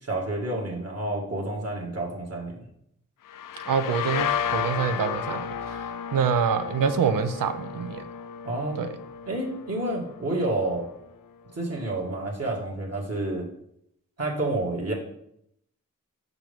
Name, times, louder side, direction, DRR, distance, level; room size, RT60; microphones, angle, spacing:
voice 1, 0.0-2.6 8.4-8.8 9.3-10.9 11.5-13.5 14.2-14.9, right 2 dB, 50° right, -2 dB, 1.9 m, -29 dB
sound 1, 3.3-10.8, left 8 dB, 80° left, 0.5 m, -33 dB
voice 2, 3.7-5.9 6.1-8.0 8.8-8.9, right 6 dB, 90° right, 10 dB, 0.6 m, -26 dB
5.9 x 5.3 x 3.5 m, 0.75 s
cardioid pair, 55°, 32 cm